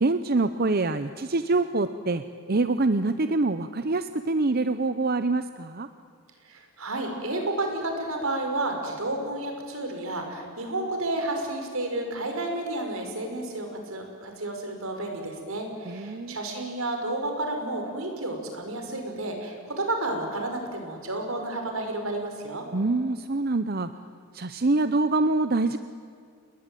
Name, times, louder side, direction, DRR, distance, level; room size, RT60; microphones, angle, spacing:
voice 1, 0.0-2.2 2.5-5.9 15.9-16.4 22.7-23.9 24.3-25.8, right 3 dB, 45° right, 11 dB, 0.7 m, -25 dB
voice 2, 6.5-22.7, right 2 dB, 80° right, 4 dB, 5.5 m, -31 dB
29.5 x 20.0 x 9.2 m, 2.2 s
head